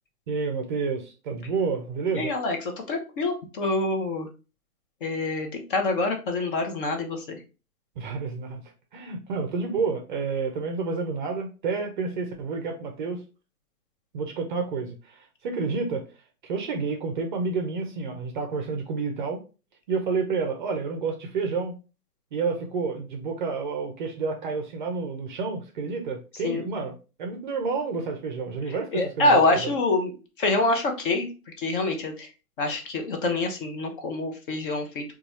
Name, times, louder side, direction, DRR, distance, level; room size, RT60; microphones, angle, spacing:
voice 1, 0.3-2.3 8.0-8.6 8.9-13.2 14.1-16.0 16.4-19.4 19.9-21.7 22.3-29.7, right 4 dB, 30° right, 4 dB, 0.5 m, -29 dB
voice 2, 2.1-4.3 5.0-7.4 26.4-26.6 28.9-31.3 31.6-32.3 32.6-35.0, left 2 dB, 35° left, 3 dB, 0.7 m, -26 dB
3.9 x 2.4 x 2.9 m, 0.33 s
figure-of-eight pair, 125°, 46 cm